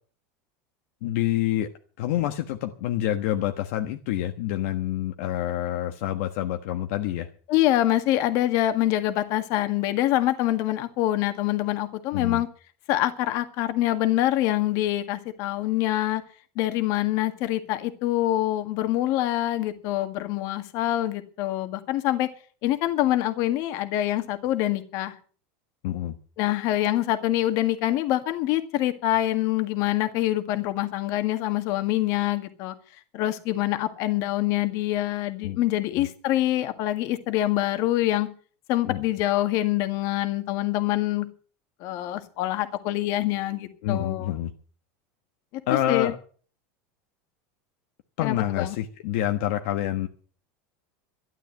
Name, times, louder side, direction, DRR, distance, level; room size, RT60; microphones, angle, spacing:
voice 1, 1.0-1.7 2.0-7.3 12.1-12.4 25.8-26.2 35.4-35.6 36.0-36.1 38.8-39.0 43.8-44.5 45.7-46.1 48.2-50.1, left 12 dB, 65° left, 6 dB, 1.3 m, -27 dB
voice 2, 7.5-12.5 12.9-16.2 16.6-22.3 22.6-25.2 26.4-32.7 33.1-38.3 38.7-41.3 41.8-44.4 45.5-46.1 48.2-48.8, left 14 dB, 45° left, 9 dB, 1.8 m, -25 dB
12.5 x 11.5 x 7.6 m, 0.42 s
supercardioid pair, 165°, 8 cm